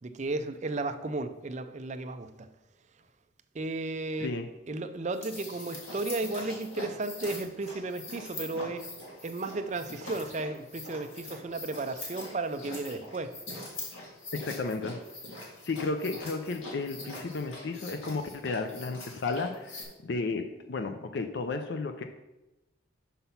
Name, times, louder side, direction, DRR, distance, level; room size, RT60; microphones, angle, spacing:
voice 1, 0.0-2.5 3.5-4.3 4.7-8.9 9.2-13.4, right 2 dB, 35° right, 0.5 m, -34 dB
sound 1, 5.1-19.8, left 2 dB, 90° left, 2.0 m, -43 dB
voice 2, 14.3-15.0 15.6-20.4 20.7-22.0, left 3 dB, 60° left, 0.5 m, -33 dB
5.9 x 5.6 x 5.6 m
head